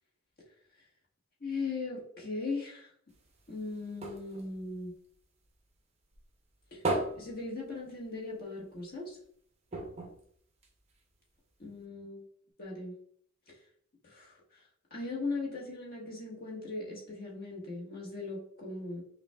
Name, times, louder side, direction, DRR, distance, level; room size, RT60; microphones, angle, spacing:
voice 1, 1.4-2.9 3.5-4.9 6.7-6.8 7.1-9.2 11.6-12.2 12.6-12.9 13.5-13.6 14.0-14.3 14.9-19.0, left 3 dB, 45° left, -3 dB, 1.2 m, -38 dB
sound 1, 3.1-5.7 6.1-8.4 8.7-8.8 9.1-9.2 9.7-11.2 11.8-11.9, right 2 dB, 30° right, 0.6 m, -38 dB
5.5 x 2.2 x 2.2 m, 0.63 s
head